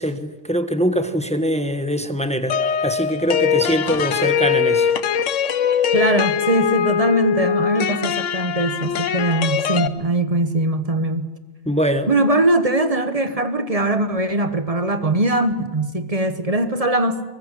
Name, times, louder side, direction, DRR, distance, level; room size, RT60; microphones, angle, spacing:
voice 1, 0.0-4.9 11.7-12.1, equal, 5° left, 1.0 m, -23 dB
sound 1, 2.5-9.9, left 7 dB, 60° left, 1.1 m, -21 dB
voice 2, 5.9-11.3 12.1-17.2, right 2 dB, 25° right, 1.1 m, -21 dB
23.0 x 20.0 x 7.6 m
omnidirectional pair, 1.6 m